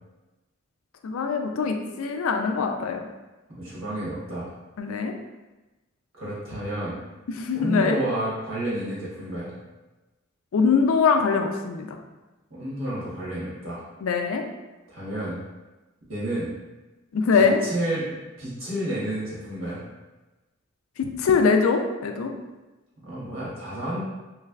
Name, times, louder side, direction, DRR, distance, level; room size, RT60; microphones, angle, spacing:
voice 1, 1.0-3.0 4.8-5.1 7.3-8.0 10.5-12.0 14.0-14.4 17.1-17.6 21.0-22.3, left 5 dB, 90° left, 4 dB, 0.4 m, -22 dB
voice 2, 3.5-4.5 6.2-7.0 7.5-9.5 12.5-13.8 14.9-15.4 16.1-16.5 17.3-19.8 23.0-24.0, right 1 dB, 80° right, -8 dB, 1.5 m, -31 dB
3.2 x 3.1 x 2.4 m, 1.1 s
head